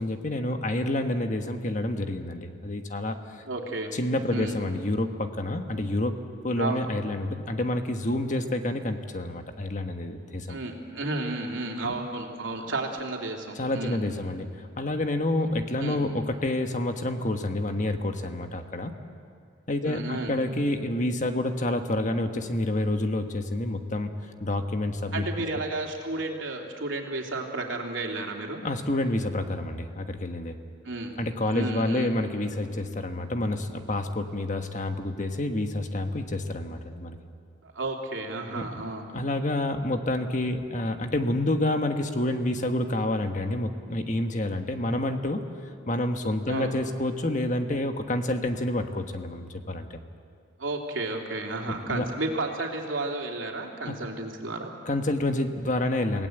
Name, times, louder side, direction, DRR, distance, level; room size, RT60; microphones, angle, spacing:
voice 1, 0.0-3.4 3.9-6.2 6.4-10.6 11.8-11.9 13.6-18.9 19.7-24.1 24.4-25.2 28.6-30.6 31.2-37.2 38.5-38.7 39.1-45.4 45.9-50.0 51.7-52.0 53.9-54.0 54.9-56.3, left 1 dB, 40° left, 6 dB, 1.4 m, -28 dB
voice 2, 3.5-4.0 4.3-4.5 6.6-6.8 10.5-14.0 15.8-16.0 19.8-20.4 25.1-28.6 30.8-31.2 31.5-32.1 37.6-39.0 46.5-46.7 50.6-54.7, right 2 dB, 80° right, 1 dB, 3.1 m, -32 dB
27.5 x 18.0 x 8.0 m, 2.3 s
head